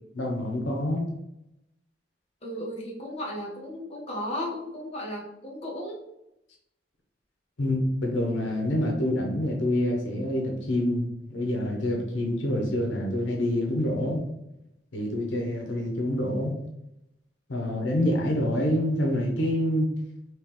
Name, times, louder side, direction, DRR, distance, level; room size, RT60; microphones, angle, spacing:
voice 1, 0.2-1.0 7.6-14.2 14.9-16.6 17.5-19.9, left 1 dB, 85° left, 0 dB, 0.8 m, -26 dB
voice 2, 2.4-6.0, left 1 dB, 35° left, -5 dB, 1.1 m, -35 dB
3.7 x 3.0 x 3.0 m, 0.84 s
head